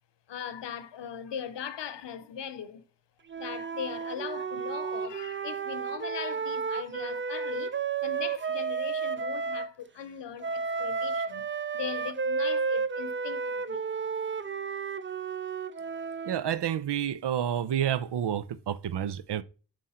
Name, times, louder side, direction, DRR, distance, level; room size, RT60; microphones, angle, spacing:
voice 1, 0.3-2.8 3.4-13.9, left 8 dB, 80° left, 0.9 m, -40 dB
Wind instrument woodwind instrument, 3.3-9.7 10.4-16.4, right 5 dB, 30° right, 0.5 m, -32 dB
voice 2, 16.3-19.4, right 10 dB, 75° right, 0.6 m, -29 dB
7.4 x 3.3 x 5.6 m
wide cardioid pair, 85°, 42 cm